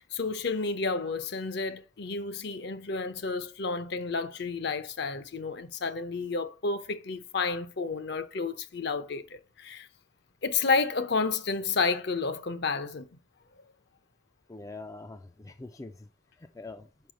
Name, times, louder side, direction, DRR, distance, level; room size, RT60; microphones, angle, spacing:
voice 1, 0.0-9.9 10.4-13.1, left 4 dB, 55° left, 0.7 m, -31 dB
voice 2, 14.5-16.1 16.4-16.9, left 3 dB, 15° left, 0.3 m, -44 dB
5.5 x 4.7 x 5.0 m
head